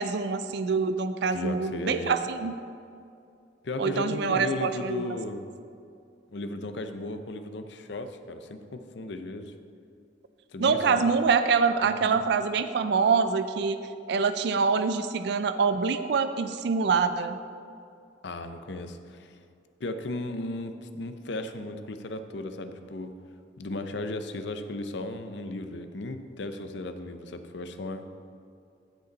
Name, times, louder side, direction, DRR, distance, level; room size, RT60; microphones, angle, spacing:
voice 1, 0.0-2.5 3.8-5.2 10.6-13.8 14.1-17.4, right 5 dB, 60° right, 10 dB, 0.4 m, -25 dB
voice 2, 1.3-2.2 3.6-5.4 6.3-9.5 10.5-11.1 11.8-12.2 18.2-19.4 19.8-23.1 23.6-28.1, left 2 dB, 65° left, 8 dB, 0.6 m, -35 dB
15.5 x 5.2 x 4.0 m, 2.5 s
head